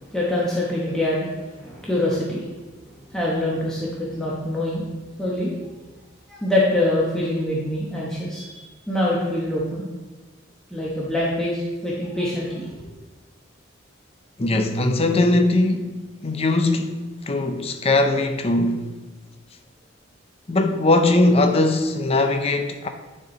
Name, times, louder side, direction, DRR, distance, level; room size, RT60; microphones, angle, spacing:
voice 1, 0.1-1.3 1.6-2.4 3.1-4.8 5.2-5.5 6.3-8.5 8.9-9.9 10.7-12.7, left 1 dB, 5° left, 1.0 m, -24 dB
voice 2, 14.4-15.9 16.2-18.9 20.5-22.9, left 2 dB, 30° left, 0.6 m, -20 dB
10.0 x 4.4 x 3.9 m
head